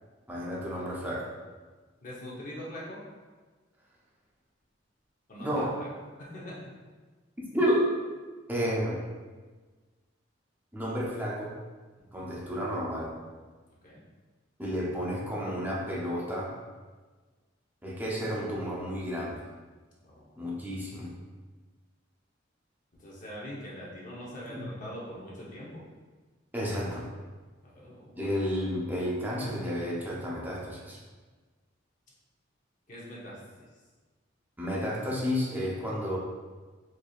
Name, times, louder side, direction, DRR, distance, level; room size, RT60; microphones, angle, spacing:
voice 1, 0.3-1.3 5.4-5.7 7.4-7.9 8.5-9.0 10.7-11.5 12.1-13.1 14.6-16.5 17.8-19.4 20.4-21.1 24.5-24.7 26.5-27.1 28.2-31.0 34.6-36.2, equal, 10° right, -5 dB, 0.7 m, -31 dB
voice 2, 2.0-3.0 5.3-5.9 6.2-6.7 12.0-12.3 13.8-14.0 20.0-20.9 23.0-25.8 27.6-28.3 32.9-33.7, equal, 40° left, -5 dB, 0.9 m, -43 dB
4.7 x 2.7 x 2.4 m, 1.4 s
head